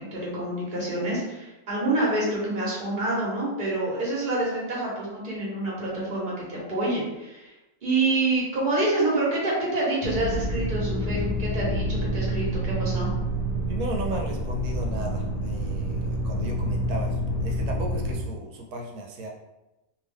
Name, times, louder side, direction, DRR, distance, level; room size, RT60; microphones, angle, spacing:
voice 1, 0.0-7.5 7.8-13.1, right 2 dB, 35° right, -5 dB, 1.2 m, -27 dB
sound 1, 10.0-18.2, equal, 50° left, 1.0 m, -28 dB
voice 2, 13.7-19.3, right 1 dB, 90° right, 1 dB, 1.1 m, -35 dB
2.9 x 2.5 x 3.4 m, 0.99 s
omnidirectional pair, 1.6 m